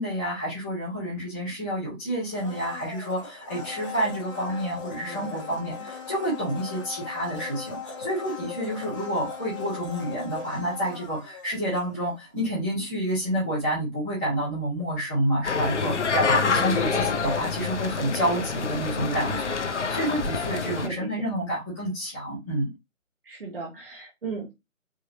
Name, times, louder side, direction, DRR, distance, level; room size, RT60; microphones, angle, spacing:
voice 1, 0.0-22.7, equal, 5° right, -14 dB, 0.8 m, -29 dB
Domestic sounds home sounds, 2.3-12.3 12.6-12.7, left 5 dB, 25° left, 1.0 m, -39 dB
voice 2, 5.0-5.9 16.4-17.1 20.6-21.3 23.2-24.5, right 3 dB, 45° right, 0 dB, 1.1 m, -37 dB
sound 1, 15.4-20.9, left 5 dB, 60° left, 0.7 m, -27 dB
4.8 x 2.8 x 2.8 m, 0.22 s
figure-of-eight pair, 155°, 41 cm